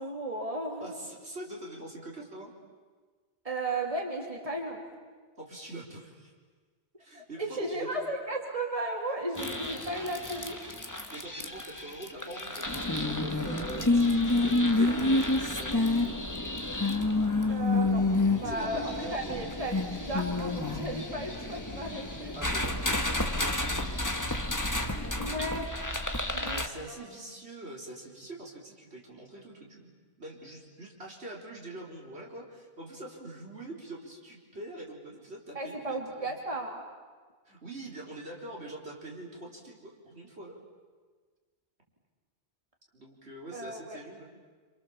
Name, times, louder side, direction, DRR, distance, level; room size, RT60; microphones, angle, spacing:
voice 1, 0.0-1.0 3.4-4.8 7.1-10.8 17.5-18.0 18.3-22.4 25.2-25.7 26.3-26.9 35.5-36.8 43.5-44.0, right 1 dB, 35° right, 1 dB, 2.8 m, -35 dB
voice 2, 0.8-2.5 5.4-6.3 7.0-7.9 11.1-16.2 18.4-19.3 22.3-24.0 26.4-29.9 30.2-36.4 37.4-40.6 42.9-44.3, right 1 dB, 80° right, -2 dB, 4.5 m, -44 dB
sound 1, 9.4-26.7, left 2 dB, 15° left, 1.5 m, -29 dB
28.0 x 27.0 x 7.1 m, 1.4 s
omnidirectional pair, 1.1 m